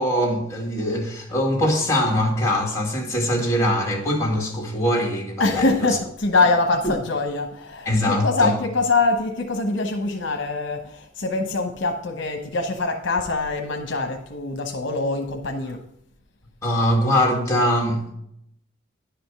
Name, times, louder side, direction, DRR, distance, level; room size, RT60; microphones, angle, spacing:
voice 1, 0.0-5.7 7.9-8.5 16.6-18.1, left 1 dB, 15° left, 2.1 m, -22 dB
voice 2, 5.4-15.8, left 3 dB, 65° left, 1.0 m, -24 dB
10.5 x 5.1 x 6.0 m
head